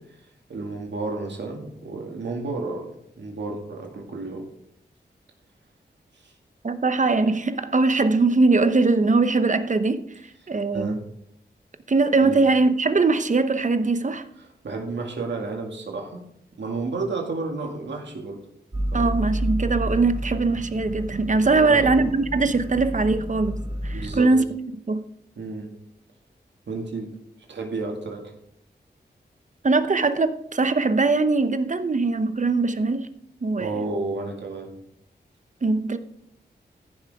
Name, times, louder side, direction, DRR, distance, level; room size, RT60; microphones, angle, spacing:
voice 1, 0.5-2.9 3.2-4.4 6.2-6.3 10.7-11.0 12.2-12.4 14.6-16.2 16.5-18.4 18.9-19.2 21.5-22.0 23.9-24.3 25.4-25.7 26.7-27.1 27.5-28.2 33.6-34.7, right 3 dB, 80° right, 2.2 m, -31 dB
voice 2, 6.6-10.0 10.5-11.0 11.9-14.3 18.9-24.4 24.9-25.0 29.6-33.1 33.4-33.7 35.6-36.0, right 3 dB, 45° right, 0.9 m, -21 dB
sound 1, 18.7-24.2, right 1 dB, 25° right, 1.6 m, -30 dB
15.0 x 6.9 x 3.6 m
cardioid pair, 60°, 18 cm